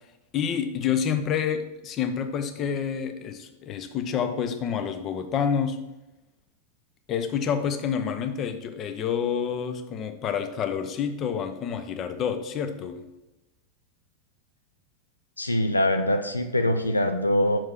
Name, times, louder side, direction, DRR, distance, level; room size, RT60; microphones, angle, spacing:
voice 1, 0.3-5.8 7.1-13.0, left 7 dB, 30° left, 8 dB, 0.7 m, -28 dB
voice 2, 15.4-17.6, left 1 dB, 80° left, 7 dB, 0.5 m, -23 dB
5.9 x 4.6 x 6.3 m, 0.97 s
figure-of-eight pair, 90°, 0 cm